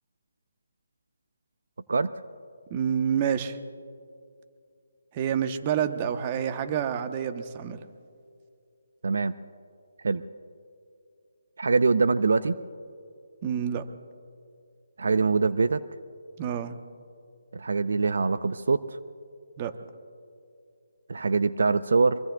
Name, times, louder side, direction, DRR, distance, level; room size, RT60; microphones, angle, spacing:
voice 1, 2.7-3.6 5.1-7.8 13.4-13.8 16.4-16.8 19.6-19.7, right 8 dB, 25° right, 9 dB, 0.9 m, -28 dB
voice 2, 9.0-9.4 10.0-10.2 11.6-12.5 15.0-15.8 17.5-18.8 21.1-22.2, right 4 dB, 70° right, 13 dB, 0.5 m, -23 dB
24.5 x 24.0 x 2.3 m, 2.4 s
figure-of-eight pair, 155°, 0 cm